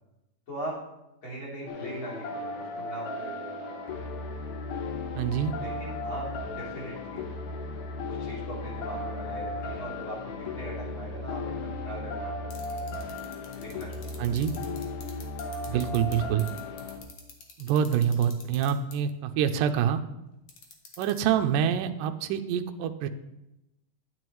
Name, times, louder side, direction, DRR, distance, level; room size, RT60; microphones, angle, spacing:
voice 1, 0.5-0.8 1.2-4.1 5.5-7.2 8.1-12.9 13.6-14.3 15.6-15.8, right 1 dB, 35° left, -6 dB, 3.9 m, -40 dB
sound 1, 1.7-17.0, left 2 dB, 80° left, 2.9 m, -36 dB
voice 2, 5.2-5.5 14.2-14.5 15.7-16.5 17.6-20.0 21.0-23.1, right 8 dB, 80° right, 7 dB, 2.0 m, -26 dB
sound 2, 12.5-16.1 16.4-18.9 20.5-21.2, left 8 dB, 60° left, 2.1 m, -45 dB
11.0 x 9.4 x 3.1 m, 0.92 s
omnidirectional pair, 4.2 m